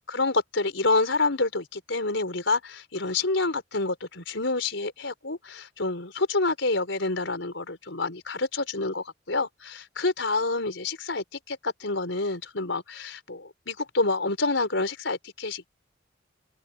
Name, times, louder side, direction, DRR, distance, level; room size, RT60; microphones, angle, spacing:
voice 1, 0.1-15.7, left 3 dB, 80° left, 4.5 m, -28 dB
open air
head